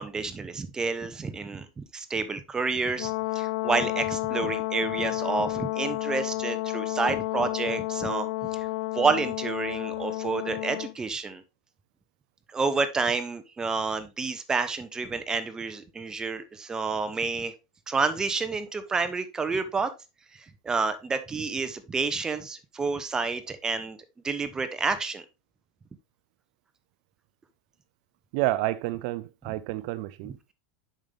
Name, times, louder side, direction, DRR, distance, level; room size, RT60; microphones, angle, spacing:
voice 1, 0.0-8.7 8.9-11.4 12.5-17.5 17.9-19.9 20.3-24.0 24.2-25.2, right 4 dB, 15° right, 0.8 m, -29 dB
Brass instrument, 3.0-10.9, left 18 dB, 70° left, 0.5 m, -31 dB
voice 2, 28.3-30.5, right 16 dB, 60° right, 0.4 m, -30 dB
7.3 x 5.4 x 3.3 m
supercardioid pair, 120°, 4 cm